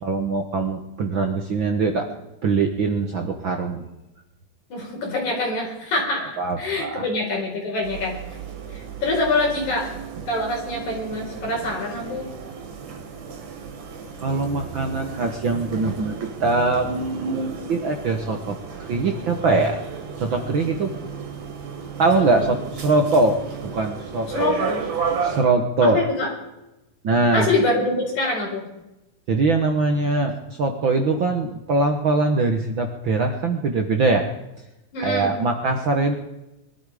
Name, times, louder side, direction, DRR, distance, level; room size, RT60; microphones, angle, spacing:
voice 1, 0.0-2.1 2.4-3.8 6.4-7.0 14.2-18.6 18.9-19.8 20.2-21.0 22.0-24.7 25.2-26.0 27.0-27.5 29.3-34.3 35.0-36.2, right 3 dB, 55° right, 4 dB, 1.5 m, -22 dB
voice 2, 4.7-8.2 8.7-9.9 10.3-12.3 22.2-22.5 24.3-24.9 25.8-26.3 27.3-28.6 34.9-35.4, left 2 dB, 70° left, -1 dB, 6.1 m, -25 dB
sound 1, 7.8-25.4, right 6 dB, 85° right, 3.7 m, -34 dB
22.5 x 13.0 x 5.0 m, 0.94 s
omnidirectional pair, 3.5 m